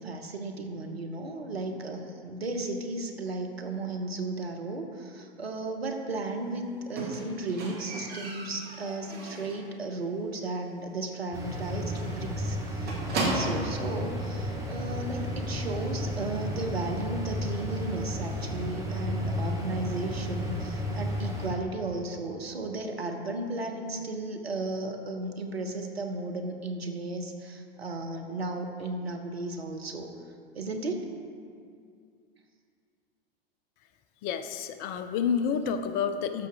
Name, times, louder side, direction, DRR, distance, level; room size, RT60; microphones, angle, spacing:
voice 1, 0.0-30.1 30.5-31.0, right 2 dB, 80° right, 4 dB, 1.0 m, -35 dB
Squeak, 7.0-9.7 10.1-10.5 10.7-10.8 11.2-11.3 11.6-11.7 12.0-13.8 14.6-14.7, right 2 dB, 30° right, 2.0 m, -35 dB
sound 1, 11.3-21.5, left 1 dB, 10° right, 1.7 m, -33 dB
voice 2, 34.2-36.5, left 7 dB, 30° left, 9 dB, 0.5 m, -29 dB
12.5 x 5.9 x 3.6 m, 2.3 s
figure-of-eight pair, 90°, 30 cm